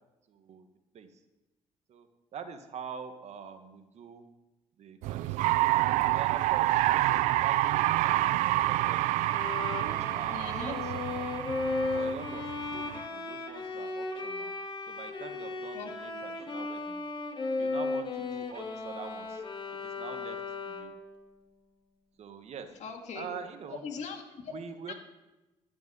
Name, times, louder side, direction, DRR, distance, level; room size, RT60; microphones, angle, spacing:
voice 1, 0.3-0.7 0.9-1.1 1.9-4.2 4.8-5.6 6.1-9.2 9.8-11.3 11.9-14.5 14.9-17.0 17.6-19.4 19.8-20.4 20.6-20.9 22.2-22.7 23.1-23.8 24.5-24.9, right 6 dB, 65° right, 8 dB, 1.4 m, -44 dB
sound 1, 5.0-13.0, right 16 dB, 85° right, 0.4 m, -28 dB
Bowed string instrument, 9.3-21.1, left 3 dB, 40° left, 2.0 m, -36 dB
voice 2, 10.3-10.8 15.7-15.9 22.8-23.3 23.8-24.5 24.9-25.0, left 6 dB, 70° left, 3 dB, 2.0 m, -40 dB
13.0 x 5.3 x 9.1 m, 1.0 s
supercardioid pair, 70°, 12 cm